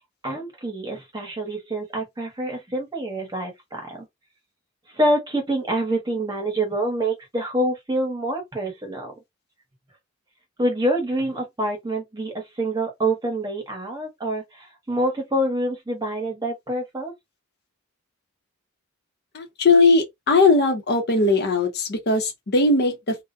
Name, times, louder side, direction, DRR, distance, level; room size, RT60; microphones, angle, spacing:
voice 1, 0.2-4.1 4.9-9.1 10.6-17.1, right 1 dB, 20° right, 0.9 m, -26 dB
voice 2, 19.3-23.2, left 3 dB, 50° left, 0.7 m, -19 dB
2.4 x 2.1 x 2.5 m
head